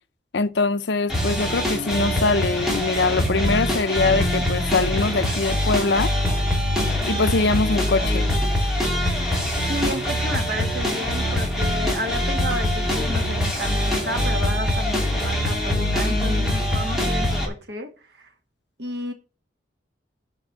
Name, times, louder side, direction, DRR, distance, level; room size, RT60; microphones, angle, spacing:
voice 1, 0.3-6.1 7.1-8.3, left 3 dB, 70° left, 0.6 m, -23 dB
sound 1, 1.1-17.5, left 1 dB, ahead, 2.8 m, -23 dB
voice 2, 9.7-18.3 18.8-19.1, right 1 dB, 65° right, 2.2 m, -32 dB
9.2 x 5.0 x 7.7 m
head